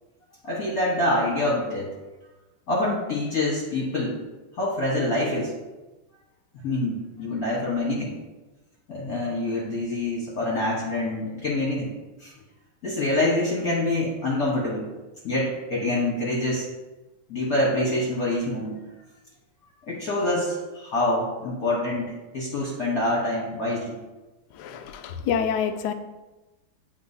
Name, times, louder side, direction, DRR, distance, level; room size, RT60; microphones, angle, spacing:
voice 1, 0.4-1.9 2.7-4.2 4.6-5.5 6.6-8.2 8.9-11.9 12.2-12.3 12.8-14.9 15.2-16.7 17.3-18.8 19.8-24.0, left 1 dB, 50° left, -6 dB, 1.4 m, -26 dB
voice 2, 24.6-25.9, left 7 dB, 90° left, 8 dB, 0.9 m, -27 dB
9.4 x 3.7 x 2.7 m, 1.1 s
omnidirectional pair, 2.3 m